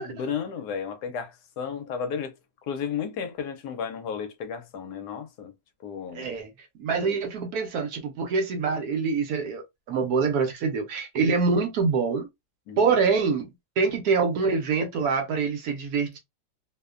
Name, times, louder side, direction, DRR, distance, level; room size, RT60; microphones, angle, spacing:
voice 1, 0.0-2.3 2.7-5.5 5.8-6.3 7.0-7.2 12.7-12.9, left 7 dB, 75° left, 1.1 m, -33 dB
voice 2, 6.1-6.5 6.7-12.3 12.8-16.2, right 5 dB, 70° right, 1.1 m, -25 dB
2.9 x 2.1 x 2.4 m
omnidirectional pair, 1.8 m